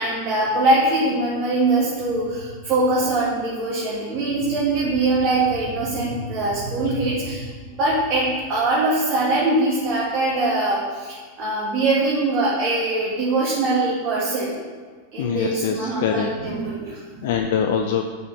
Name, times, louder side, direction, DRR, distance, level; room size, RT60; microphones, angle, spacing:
voice 1, 0.0-7.5 7.8-14.5 15.1-17.2, right 2 dB, 35° right, -7 dB, 2.3 m, -22 dB
voice 2, 15.2-16.3 17.2-18.0, left 7 dB, 55° left, 5 dB, 0.6 m, -23 dB
6.7 x 6.7 x 7.4 m, 1.5 s
figure-of-eight pair, 90°, 0 cm